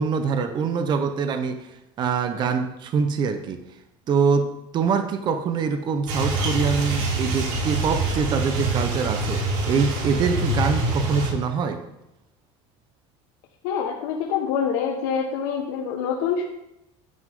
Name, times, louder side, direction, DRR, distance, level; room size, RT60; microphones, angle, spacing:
voice 1, 0.0-3.6 4.1-11.8, right 5 dB, 35° right, 7 dB, 1.0 m, -24 dB
sound 1, 6.1-11.3, right 2 dB, 70° right, 3.5 m, -25 dB
voice 2, 13.6-16.4, left 7 dB, 85° left, -1 dB, 1.6 m, -25 dB
13.0 x 9.8 x 3.8 m, 0.87 s
cardioid pair, 155°, 14 cm